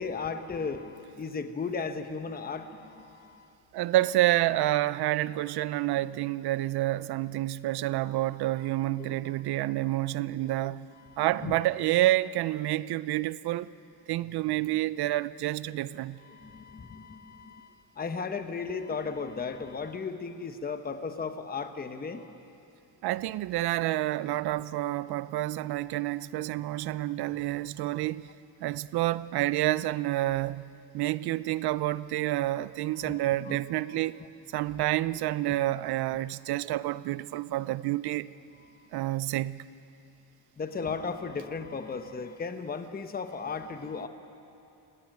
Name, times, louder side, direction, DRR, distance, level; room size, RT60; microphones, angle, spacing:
voice 1, 0.0-3.5 9.1-9.2 10.6-10.7 11.1-11.5 16.2-22.3 33.0-33.6 33.9-34.0 35.5-35.6 38.8-38.9 40.6-44.1, left 5 dB, 25° left, 1.0 m, -36 dB
voice 2, 3.7-13.7 14.1-16.2 23.0-28.3 28.6-30.7 30.9-34.2 34.5-38.3 38.9-39.7, right 15 dB, 80° right, 0.6 m, -29 dB
24.5 x 18.0 x 9.2 m
cardioid pair, 130°, 38 cm